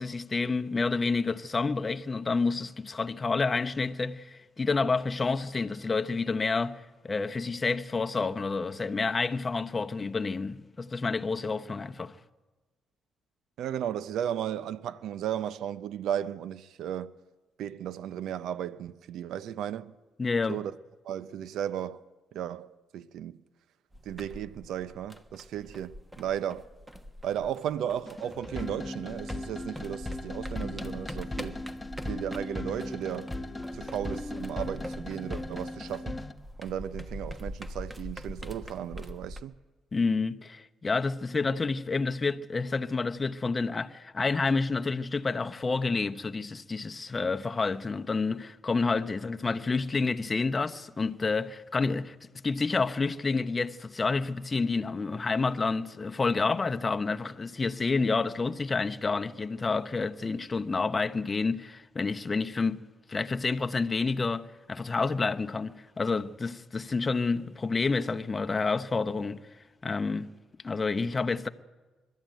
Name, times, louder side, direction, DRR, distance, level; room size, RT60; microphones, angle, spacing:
voice 1, 0.0-12.1 20.2-20.6 39.9-52.1 52.4-69.5 69.8-70.3 70.6-71.5, left 4 dB, 30° left, 0.9 m, -29 dB
voice 2, 13.6-17.1 17.6-19.9 20.5-20.7 21.0-22.0 22.3-23.4 24.1-26.7 27.2-31.7 32.1-33.3 33.7-36.2 36.6-39.5, right 10 dB, 80° right, 0.6 m, -35 dB
sound 1, 23.9-28.8 29.1-39.4, equal, 15° right, 1.3 m, -43 dB
sound 2, 28.1-36.3, left 2 dB, 10° left, 1.2 m, -37 dB
22.0 x 13.0 x 9.1 m
cardioid pair, 90°, 0 cm